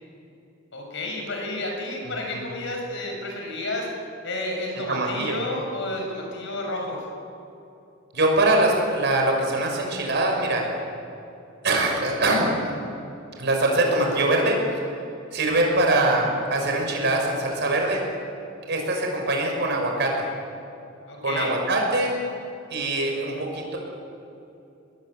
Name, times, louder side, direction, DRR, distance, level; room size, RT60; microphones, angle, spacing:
voice 1, 0.7-3.9 4.2-7.0 21.1-21.5, left 2 dB, 65° left, 2 dB, 6.7 m, -31 dB
voice 2, 4.9-5.4 8.1-10.6 11.6-12.5 13.4-14.6 15.3-18.0 18.7-20.3 21.2-22.2 22.7-23.8, right 2 dB, 60° right, 1 dB, 6.4 m, -23 dB
22.0 x 21.5 x 8.7 m, 2.8 s
head